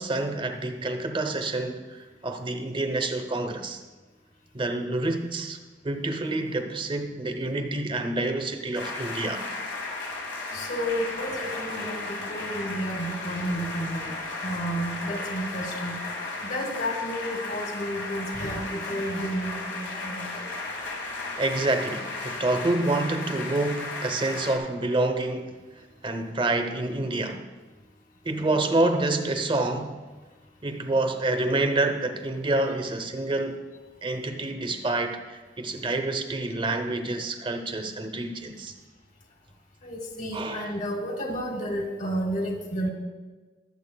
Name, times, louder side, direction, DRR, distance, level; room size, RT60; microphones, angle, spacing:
voice 1, 0.0-3.8 4.5-5.6 5.8-9.5 21.4-25.6 26.0-27.4 28.2-30.0 30.6-33.6 34.0-38.7 40.3-40.7, right 2 dB, 30° right, 0.7 m, -28 dB
sound 1, 8.7-24.6, left 2 dB, 90° left, 1.7 m, -35 dB
voice 2, 10.5-14.1 14.4-16.0 16.5-20.4 39.8-42.9, equal, 50° left, 1.5 m, -31 dB
21.0 x 7.4 x 2.2 m
head